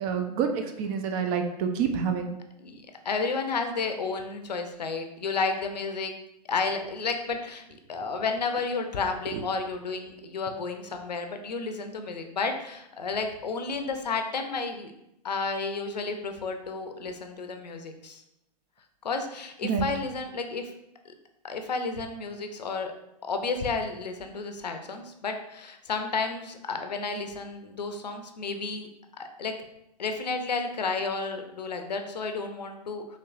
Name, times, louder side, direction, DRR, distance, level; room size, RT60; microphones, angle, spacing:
voice 1, 0.0-2.3 9.3-9.4 19.6-19.9, right 6 dB, 30° right, 5 dB, 0.4 m, -28 dB
voice 2, 2.6-6.1 6.5-14.9 15.2-18.2 19.0-20.7 21.4-22.9 23.2-28.9 29.2-29.5 30.0-33.2, left 4 dB, 75° left, 6 dB, 0.6 m, -32 dB
4.3 x 3.1 x 2.5 m, 0.84 s
figure-of-eight pair, 105°, 21 cm